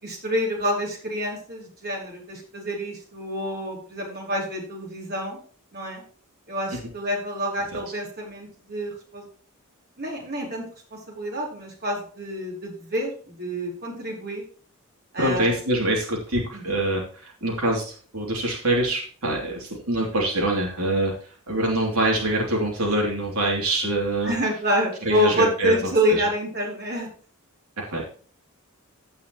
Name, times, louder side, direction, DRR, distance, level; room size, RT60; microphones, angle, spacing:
voice 1, 0.0-5.4 5.7-6.0 6.5-9.2 10.0-10.6 10.9-14.4 15.1-15.5 16.5-16.6 24.2-27.1, equal, 50° right, -2 dB, 4.5 m, -27 dB
voice 2, 15.2-21.1 21.5-24.3 25.0-25.7 26.1-26.2 27.8-28.0, right 1 dB, 85° right, -1 dB, 3.1 m, -24 dB
16.5 x 5.7 x 3.1 m, 0.41 s
head